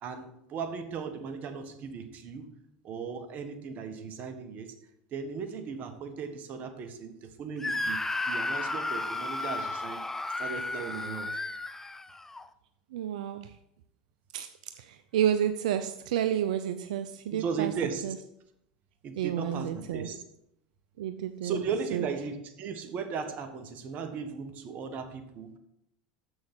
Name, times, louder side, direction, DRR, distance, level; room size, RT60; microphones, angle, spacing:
voice 1, 0.0-2.6 2.8-4.8 5.1-8.0 8.3-10.0 10.4-11.4 17.3-18.1 19.0-20.2 21.4-25.6, right 6 dB, 40° right, 7 dB, 1.4 m, -36 dB
Screaming, 7.6-12.5, left 2 dB, 10° left, 0.5 m, -33 dB
voice 2, 12.9-13.5 14.3-14.5 14.8-17.7 18.0-18.2 19.2-20.1 21.0-21.6 21.9-22.1, right 10 dB, 80° right, 10 dB, 0.5 m, -30 dB
7.1 x 6.3 x 6.1 m, 0.80 s
hypercardioid pair, 105°, 4 cm